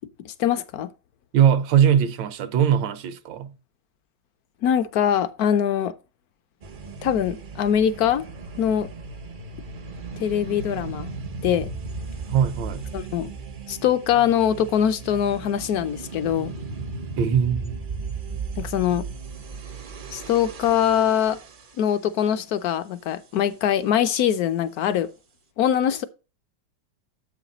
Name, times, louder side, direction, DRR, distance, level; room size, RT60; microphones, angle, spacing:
voice 1, 0.2-0.9 4.6-5.9 7.0-8.2 8.6-8.9 10.2-11.2 11.4-11.7 12.9-13.3 13.7-16.5 18.6-19.0 20.1-21.4 21.8-25.1 25.6-26.1, left 9 dB, 70° left, 0.9 m, -23 dB
voice 2, 1.3-3.5 12.3-12.9 17.2-17.8, right 8 dB, 80° right, 1.3 m, -20 dB
sound 1, 6.6-21.9, right 4 dB, 60° right, 0.5 m, -36 dB
7.7 x 5.9 x 3.9 m
omnidirectional pair, 2.0 m